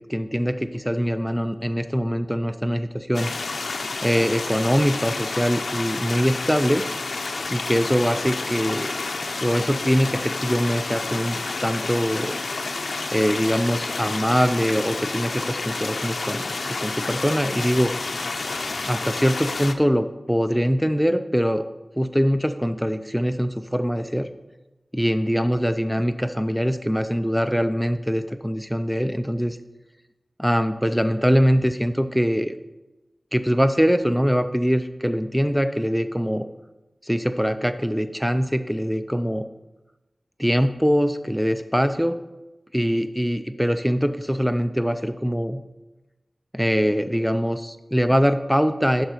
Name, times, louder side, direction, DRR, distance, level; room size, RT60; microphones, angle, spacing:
voice 1, 0.0-3.3 4.0-6.8 7.5-9.0 9.4-12.3 13.1-17.9 18.9-21.7 22.0-24.3 24.9-29.6 30.4-32.5 33.3-36.5 37.0-39.4 40.4-42.2 42.7-45.6 46.5-49.1, equal, ahead, 9 dB, 0.4 m, -23 dB
sound 1, 3.1-19.7, left 3 dB, 85° left, 0.6 m, -30 dB
10.5 x 4.1 x 6.3 m, 1.0 s
wide cardioid pair, 60°, 0 cm